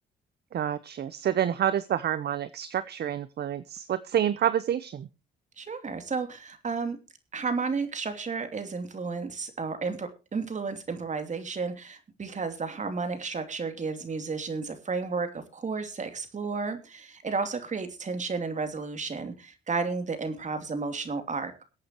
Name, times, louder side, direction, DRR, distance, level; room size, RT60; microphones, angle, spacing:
voice 1, 0.5-5.1, right 10 dB, 55° right, 15 dB, 0.8 m, -28 dB
voice 2, 5.6-7.0 7.3-21.5, right 4 dB, 35° right, 8 dB, 3.0 m, -32 dB
23.0 x 8.5 x 3.0 m, 0.30 s
cardioid pair, 90°, 20 cm